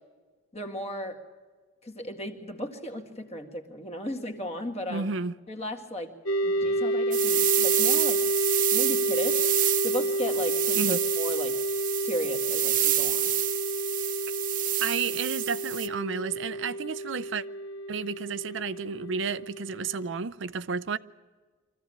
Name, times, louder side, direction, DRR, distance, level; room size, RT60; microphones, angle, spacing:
voice 1, 0.5-1.2 1.8-5.1 5.5-6.1 6.4-8.2 8.7-9.5 9.8-11.6 12.0-13.3, equal, 30° left, 2.0 m, -35 dB
voice 2, 4.9-5.4 10.7-11.0 14.8-17.4 17.9-21.0, right 5 dB, 65° right, 0.6 m, -31 dB
sound 1, 6.3-20.2, right 1 dB, 90° left, 0.8 m, -30 dB
sound 2, 7.1-15.9, right 12 dB, 40° right, 0.9 m, -28 dB
24.5 x 15.0 x 8.8 m
head